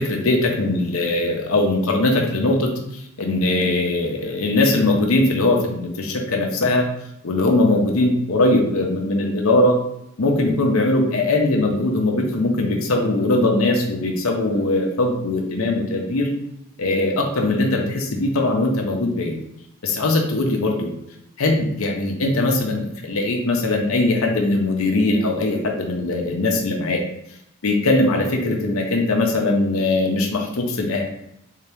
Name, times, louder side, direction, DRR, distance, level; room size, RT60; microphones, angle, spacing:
voice 1, 0.0-6.9 7.2-9.8 10.2-16.3 16.8-19.4 19.8-20.9 21.4-27.0 27.6-31.0, left 2 dB, 70° left, 1 dB, 0.7 m, -20 dB
3.7 x 2.8 x 3.4 m, 0.78 s
head